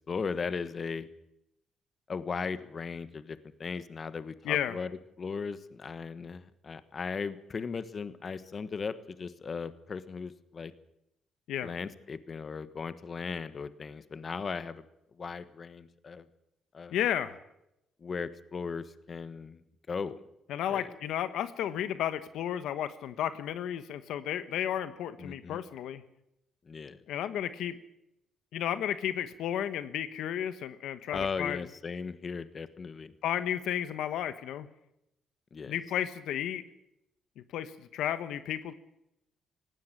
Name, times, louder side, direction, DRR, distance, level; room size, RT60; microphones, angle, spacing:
voice 1, 0.1-1.1 2.1-4.9 5.2-10.7 11.6-14.8 15.2-16.3 16.7-17.0 18.0-19.6 19.9-20.2 20.7-20.9 25.2-25.6 26.7-27.0 31.1-33.1 35.5-35.8, left 5 dB, 40° left, 13 dB, 1.3 m, -37 dB
voice 2, 16.9-17.4 20.5-26.0 27.1-27.8 28.5-31.6 33.2-34.7 35.7-36.6 37.4-38.7, left 10 dB, 80° left, 12 dB, 1.2 m, -33 dB
18.5 x 16.5 x 9.0 m, 0.83 s
cardioid pair, 90°, 0 cm